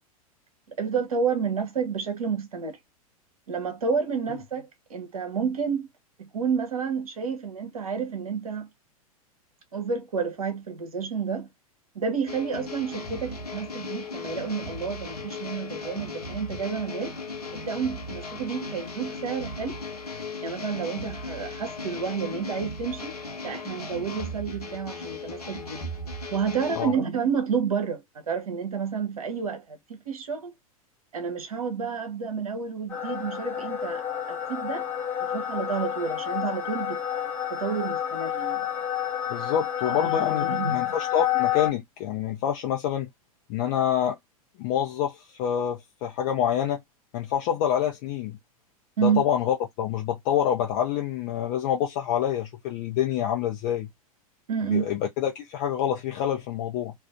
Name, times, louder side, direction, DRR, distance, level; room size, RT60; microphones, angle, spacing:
voice 1, 0.7-2.8 3.5-5.9 6.2-8.7 9.7-11.5 11.9-17.1 17.5-19.8 20.4-23.2 23.4-25.9 26.3-30.5 31.1-34.9 35.2-37.0 37.5-38.7 39.9-41.0 49.0-49.2 54.5-54.9, right 6 dB, 70° right, 0.8 m, -30 dB
sound 1, 12.3-26.9, left 2 dB, 90° left, 0.7 m, -37 dB
sound 2, 32.9-41.7, left 11 dB, 10° left, 1.0 m, -29 dB
voice 2, 39.3-43.1 43.5-44.2 44.6-46.8 47.1-48.4 49.0-53.9 54.7-56.9, left 9 dB, 40° left, 0.7 m, -27 dB
2.4 x 2.4 x 2.3 m
figure-of-eight pair, 95°, 19 cm